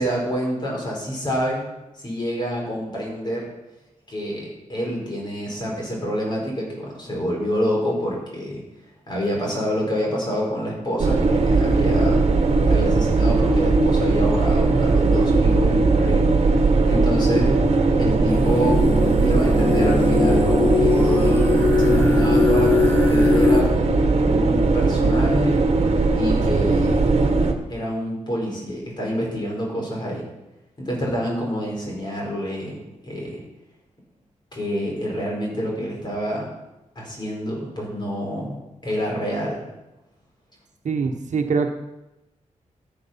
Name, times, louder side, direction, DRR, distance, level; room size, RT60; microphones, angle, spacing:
voice 1, 0.0-1.7 2.0-3.5 4.1-8.6 9.1-12.2 12.7-16.3 16.5-17.6 18.0-23.7 24.2-25.7 26.1-27.0 27.7-30.3 30.8-33.4 34.5-36.5 36.9-39.6, equal, 35° left, -2 dB, 4.9 m, -27 dB
sound 1, 11.0-27.5, right 3 dB, 55° right, 1.5 m, -19 dB
sound 2, 18.3-23.6, left 4 dB, 15° left, 1.7 m, -21 dB
voice 2, 40.8-41.7, right 5 dB, 70° right, 5 dB, 1.2 m, -23 dB
14.0 x 7.8 x 5.8 m, 0.98 s
wide cardioid pair, 135°, 13 cm